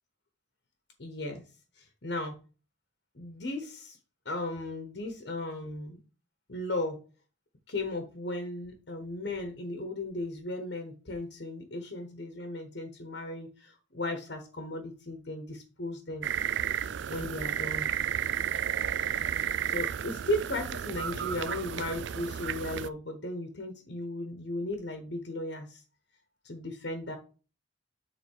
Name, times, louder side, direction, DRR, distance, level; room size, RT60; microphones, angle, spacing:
voice 1, 1.0-1.4 1.8-2.3 3.1-4.0 4.2-6.0 6.5-7.0 7.7-16.3 17.1-17.9 19.3-25.8 26.4-27.2, left 1 dB, 60° left, 5 dB, 1.2 m, -36 dB
sound 1, 16.2-22.9, right 9 dB, 65° right, 0.4 m, -32 dB
7.0 x 4.0 x 4.7 m, 0.34 s
head